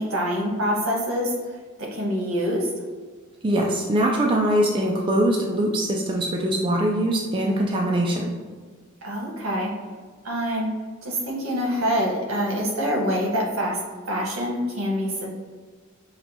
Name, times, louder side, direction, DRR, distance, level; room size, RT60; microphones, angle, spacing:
voice 1, 0.0-1.3 1.8-2.7 9.0-9.7 10.2-10.7 11.0-13.8 14.1-15.3, equal, 70° right, -2 dB, 1.0 m, -25 dB
voice 2, 3.4-8.4, right 1 dB, 25° right, -1 dB, 0.3 m, -22 dB
5.8 x 2.2 x 2.7 m, 1.5 s
head